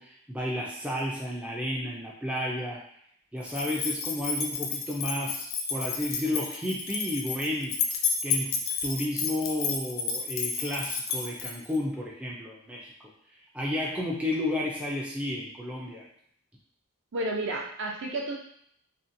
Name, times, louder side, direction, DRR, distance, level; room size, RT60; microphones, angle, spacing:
voice 1, 0.0-2.8 3.3-7.8 8.2-13.1 13.5-16.1, left 1 dB, 5° right, -4 dB, 0.3 m, -32 dB
sound 1, 3.5-11.8, left 6 dB, 60° left, 0.4 m, -31 dB
voice 2, 17.1-18.4, right 2 dB, 60° right, -1 dB, 0.6 m, -31 dB
2.6 x 2.2 x 2.6 m, 0.67 s
head